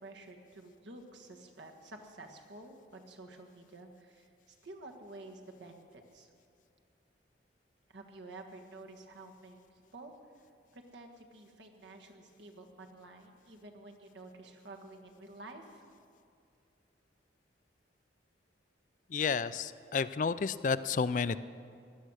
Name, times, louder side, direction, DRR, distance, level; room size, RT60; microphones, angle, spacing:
voice 1, 0.0-6.3 7.9-9.6 9.9-10.1 10.7-15.8, right 2 dB, 75° right, 3 dB, 1.6 m, -51 dB
voice 2, 19.1-21.4, left 5 dB, 40° left, 15 dB, 0.3 m, -31 dB
16.5 x 11.5 x 6.4 m, 2.4 s
head